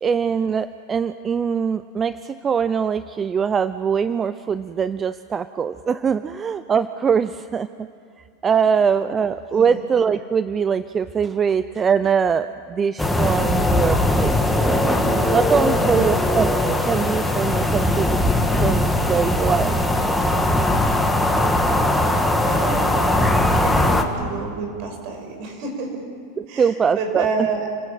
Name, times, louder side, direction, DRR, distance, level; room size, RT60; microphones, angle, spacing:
voice 1, 0.0-7.7 8.4-14.4 15.3-18.2 18.5-19.7 26.4-27.3, right 6 dB, 25° right, 14 dB, 0.6 m, -22 dB
voice 2, 9.5-9.8 15.6-16.0 22.5-26.0 26.5-27.7, right 4 dB, 55° right, 3 dB, 6.3 m, -29 dB
sound 1, 13.0-24.0, left 1 dB, 5° left, 2.2 m, -20 dB
29.5 x 16.0 x 9.1 m, 2.3 s
hypercardioid pair, 100°, 0 cm